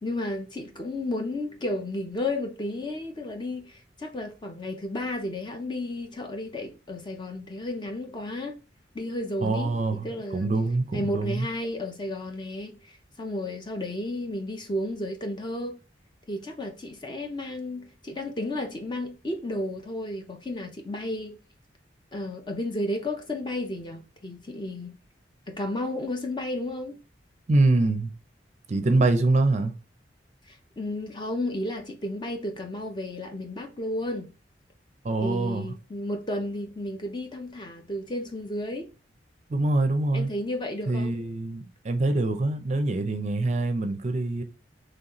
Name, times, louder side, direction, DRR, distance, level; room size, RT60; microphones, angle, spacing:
voice 1, 0.0-8.5 8.9-10.5 10.9-15.8 16.3-21.4 22.1-24.9 25.5-27.0 30.5-34.3 35.2-38.9 40.1-41.1, left 1 dB, 25° left, 0.6 m, -33 dB
voice 2, 9.4-11.5 27.5-28.1 28.7-29.8 35.0-35.7 39.5-40.3 40.9-44.4, right 2 dB, 40° right, 0.5 m, -25 dB
4.0 x 3.2 x 2.9 m
head